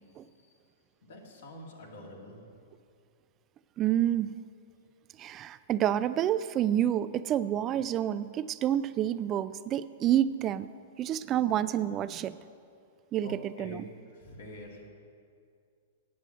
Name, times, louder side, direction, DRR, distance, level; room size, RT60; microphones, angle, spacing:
voice 1, 1.0-2.4 13.2-13.8 14.1-14.8, left 1 dB, 75° left, -1 dB, 2.3 m, -45 dB
voice 2, 3.8-4.3 5.2-10.7 11.0-12.4 13.1-13.9, right 11 dB, 30° right, 14 dB, 0.3 m, -28 dB
9.3 x 7.9 x 7.7 m, 2.3 s
hypercardioid pair, 120°, 0 cm